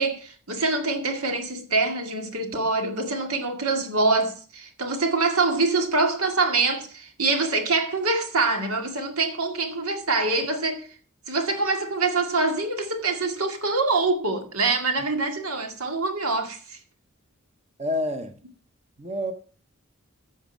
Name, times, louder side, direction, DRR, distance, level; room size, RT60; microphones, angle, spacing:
voice 1, 0.0-10.9 11.3-16.8, right 3 dB, 85° right, 2.1 m, -25 dB
voice 2, 17.8-18.4 19.0-19.3, left 1 dB, 30° right, 1.0 m, -28 dB
14.5 x 5.3 x 6.1 m
head